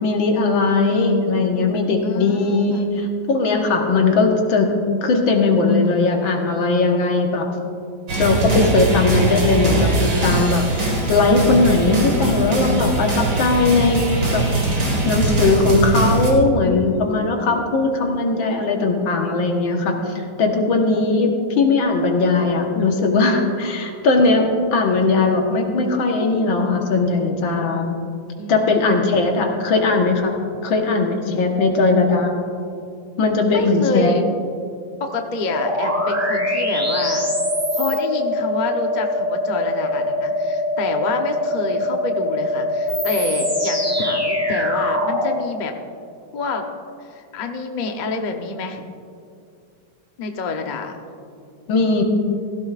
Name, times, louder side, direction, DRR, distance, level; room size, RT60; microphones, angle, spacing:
voice 1, 0.0-4.7 5.0-7.5 8.2-14.0 14.3-14.5 15.1-19.9 20.4-28.0 28.5-32.4 33.2-34.2 51.7-52.0, left 3 dB, 85° left, 2 dB, 2.0 m, -19 dB
voice 2, 0.8-1.4 2.0-2.9 16.5-17.5 20.8-21.3 28.4-29.6 33.5-34.2 35.0-37.3 37.7-45.7 46.3-46.7 47.1-48.8 50.2-51.0, left 3 dB, 40° left, 4 dB, 0.6 m, -28 dB
sound 1, 8.1-16.3, right 2 dB, 55° right, 2.5 m, -21 dB
sound 2, 35.5-45.4, left 1 dB, 10° right, 0.9 m, -22 dB
16.0 x 15.5 x 2.5 m, 2.4 s
omnidirectional pair, 2.1 m